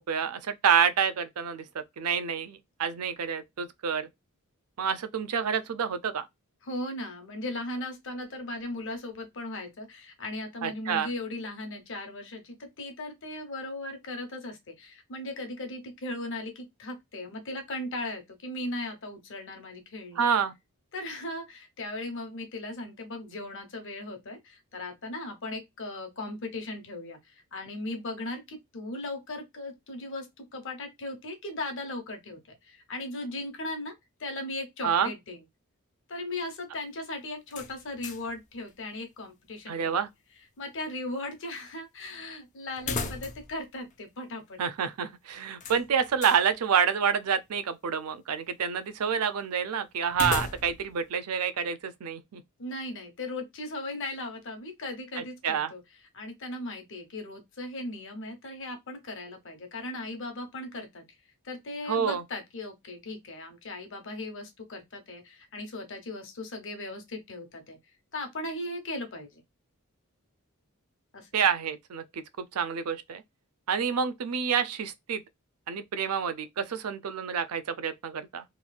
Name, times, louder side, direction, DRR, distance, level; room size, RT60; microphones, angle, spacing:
voice 1, 0.1-4.1 4.8-6.3 10.6-11.1 20.2-20.5 34.8-35.1 39.7-40.1 44.6-52.4 55.2-55.7 61.9-62.2 71.3-73.2 73.7-75.2 75.7-78.4, right 7 dB, 90° right, 0.5 m, -28 dB
voice 2, 6.6-20.2 20.9-35.4 36.1-39.9 40.6-44.6 52.6-55.8 56.1-61.0 61.4-67.8 68.1-69.4 71.1-71.3, left 2 dB, 60° left, 1.0 m, -37 dB
sound 1, 37.5-38.4 38.7-38.8 42.8-43.6 43.9-44.0 45.6-46.4 50.1-50.9, left 4 dB, 35° left, 0.4 m, -35 dB
3.1 x 2.4 x 2.2 m
head